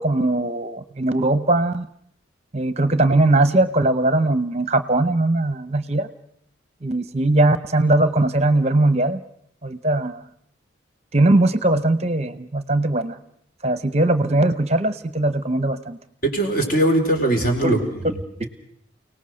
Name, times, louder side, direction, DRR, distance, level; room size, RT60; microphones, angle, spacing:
voice 1, 0.0-1.9 2.5-6.1 6.8-9.2 9.6-10.2 11.1-13.2 13.6-16.0 17.6-17.8, right 2 dB, 30° right, 12 dB, 0.8 m, -20 dB
voice 2, 16.2-18.5, right 1 dB, 45° left, 4 dB, 4.2 m, -21 dB
30.0 x 18.5 x 6.4 m, 0.69 s
head